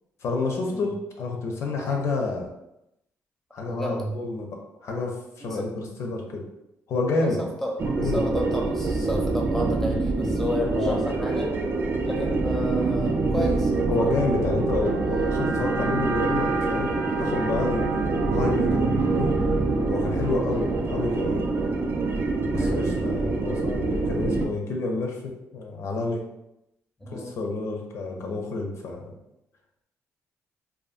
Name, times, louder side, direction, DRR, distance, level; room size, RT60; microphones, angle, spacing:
voice 1, 0.2-2.5 3.5-6.5 6.9-7.5 7.9-8.4 10.7-11.0 13.9-16.9 17.2-19.3 19.9-21.5 22.5-26.2 27.1-29.1, left 3 dB, 65° left, 1 dB, 0.5 m, -29 dB
voice 2, 3.7-4.1 5.4-5.7 7.1-7.7 8.0-11.6 12.0-14.1 20.5-20.7 22.5-22.9 27.0-27.4, left 1 dB, 5° left, -1 dB, 0.6 m, -32 dB
sound 1, 7.8-24.5, right 3 dB, 45° right, 0.3 m, -25 dB
2.6 x 2.4 x 2.4 m, 0.86 s
cardioid pair, 105°, 5 cm